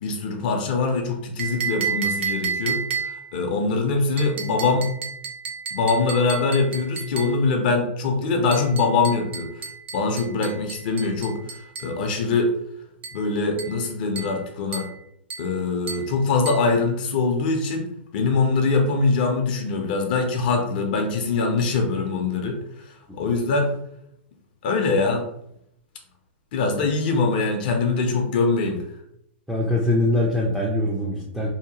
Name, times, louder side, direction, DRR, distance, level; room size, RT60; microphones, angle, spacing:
voice 1, 0.0-4.9 5.7-9.5 9.9-12.5 13.1-14.9 15.4-22.6 23.1-23.7 24.6-25.2 26.5-28.8, left 3 dB, 50° left, 3 dB, 0.6 m, -23 dB
sound 1, 1.4-3.4 4.2-7.4 8.5-12.0 13.0-13.3 13.6-13.8 14.2-14.4 14.7-15.0 15.3-15.5 15.9-16.1 16.5-16.7, right 6 dB, 70° right, 0.5 m, -32 dB
voice 2, 29.5-31.5, left 1 dB, ahead, -5 dB, 0.4 m, -22 dB
2.8 x 2.1 x 2.9 m, 0.75 s
hypercardioid pair, 145°, 6 cm